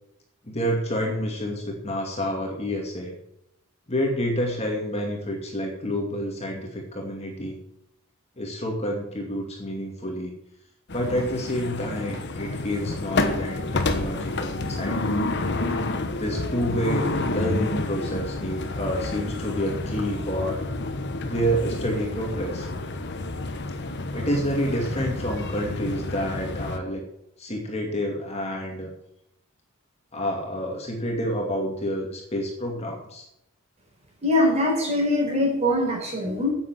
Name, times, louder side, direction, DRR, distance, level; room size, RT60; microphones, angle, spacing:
voice 1, 0.4-3.1 3.9-7.6 8.4-10.3 10.9-15.0 16.2-20.6 21.2-22.7 24.1-27.0 27.4-28.9 30.1-33.2, equal, 30° left, 0 dB, 2.5 m, -28 dB
sound 1, 10.9-26.8, left 2 dB, 55° left, 1.2 m, -29 dB
voice 2, 34.2-36.5, left 1 dB, 30° right, -1 dB, 4.5 m, -22 dB
9.6 x 8.6 x 8.1 m, 0.78 s
head